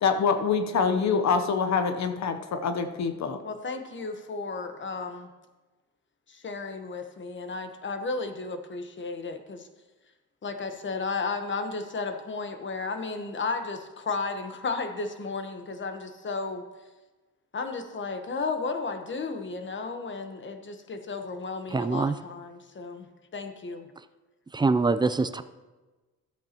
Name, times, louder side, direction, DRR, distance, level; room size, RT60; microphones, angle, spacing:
voice 1, 0.0-3.4, left 5 dB, 60° left, 8 dB, 0.9 m, -25 dB
voice 2, 3.4-5.3 6.3-9.7 10.4-16.6 17.5-23.1 23.3-23.9, left 4 dB, 35° left, 7 dB, 1.2 m, -33 dB
voice 3, 21.7-22.2 24.5-25.4, right 3 dB, 15° right, 12 dB, 0.4 m, -24 dB
13.0 x 8.3 x 3.0 m, 1.2 s
cardioid pair, 85°, 32 cm